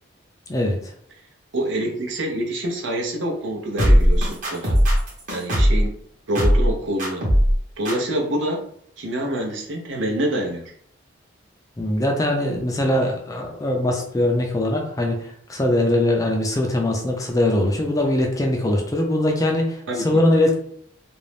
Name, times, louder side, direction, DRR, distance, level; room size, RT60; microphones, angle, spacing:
voice 1, 0.5-0.9 11.8-19.8 20.0-20.6, left 1 dB, 20° left, 1 dB, 0.4 m, -21 dB
voice 2, 1.5-4.8 5.3-5.9 6.3-7.3 7.8-8.6 9.0-10.7 19.9-20.0, right 1 dB, 75° right, 0 dB, 0.6 m, -26 dB
sound 1, 3.8-5.9 6.3-6.7 7.0-7.6 7.8-7.9, equal, 40° right, 0.9 m, -17 dB
2.6 x 2.0 x 3.2 m, 0.65 s
head